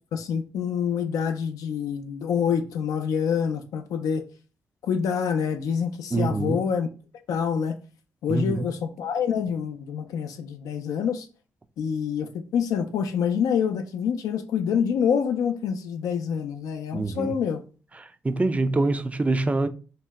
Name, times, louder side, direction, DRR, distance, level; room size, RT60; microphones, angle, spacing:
voice 1, 0.1-4.2 4.8-6.9 7.3-7.8 8.2-11.3 11.8-17.6, left 7 dB, 85° left, 0.4 m, -26 dB
voice 2, 6.1-6.6 8.3-8.7 16.9-17.3 18.2-19.7, right 2 dB, 25° right, 0.4 m, -24 dB
2.7 x 2.1 x 3.4 m
cardioid pair, 60°, 6 cm